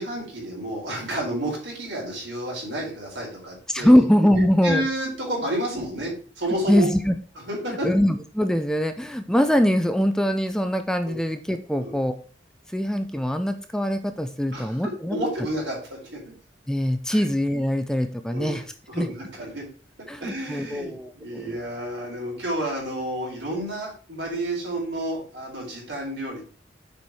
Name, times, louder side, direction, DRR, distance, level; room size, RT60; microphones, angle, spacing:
voice 1, 0.0-4.0 4.6-6.9 7.5-7.9 11.0-11.2 11.8-11.9 14.5-14.8 15.1-16.2 17.1-17.3 18.3-18.6 18.9-19.6 20.0-26.4, right 1 dB, 80° right, -3 dB, 4.1 m, -30 dB
voice 2, 3.7-4.9 6.7-7.2 7.8-12.1 12.7-15.2 16.7-18.6 18.9-19.1 20.1-21.6, equal, 5° left, 8 dB, 0.4 m, -22 dB
7.0 x 4.7 x 4.7 m, 0.40 s
head